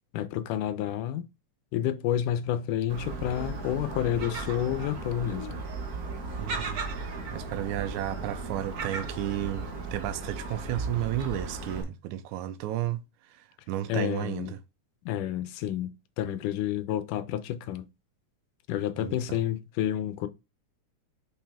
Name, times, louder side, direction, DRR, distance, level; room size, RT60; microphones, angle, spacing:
voice 1, 0.1-1.2 1.7-5.6 13.9-14.5 15.1-17.9 18.7-20.3, left 11 dB, 90° left, 2.2 m, -30 dB
Gull seagull, 2.9-11.8, right 3 dB, 65° right, 0.9 m, -36 dB
voice 2, 6.4-13.0 13.3-14.6 19.0-19.4, right 13 dB, 80° right, 2.0 m, -33 dB
5.7 x 5.4 x 3.5 m
omnidirectional pair, 3.5 m